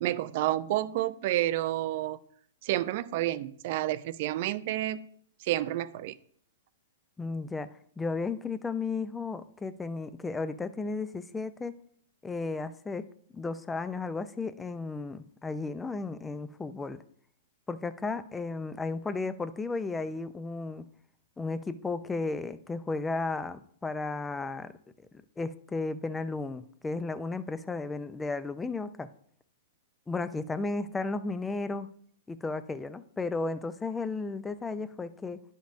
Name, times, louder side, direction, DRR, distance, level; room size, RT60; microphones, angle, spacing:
voice 1, 0.0-2.2 2.6-5.1 5.4-6.2, right 14 dB, 55° right, 16 dB, 0.4 m, -30 dB
voice 2, 7.2-7.7 8.0-11.7 12.2-13.1 13.3-17.0 17.7-20.9 21.4-24.7 25.4-29.1 30.1-31.9 32.3-35.4, left 3 dB, 10° left, 13 dB, 0.4 m, -34 dB
10.0 x 5.2 x 2.5 m, 0.62 s
hypercardioid pair, 125°, 0 cm